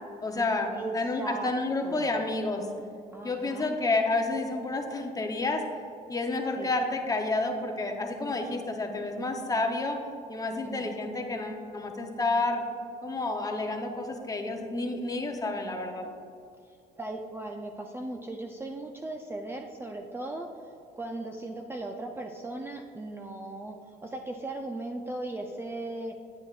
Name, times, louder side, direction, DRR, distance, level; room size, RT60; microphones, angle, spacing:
voice 1, 0.2-2.7 3.2-5.6 6.1-10.0 10.3-12.6 13.0-16.0, left 2 dB, 20° left, 3 dB, 0.8 m, -30 dB
voice 2, 1.2-1.5 1.8-2.1 3.1-3.7 6.6-6.7 10.6-11.1 16.6-26.2, right 2 dB, 15° right, 2 dB, 0.5 m, -38 dB
9.6 x 8.2 x 2.4 m, 2.5 s
cardioid pair, 110°, 17 cm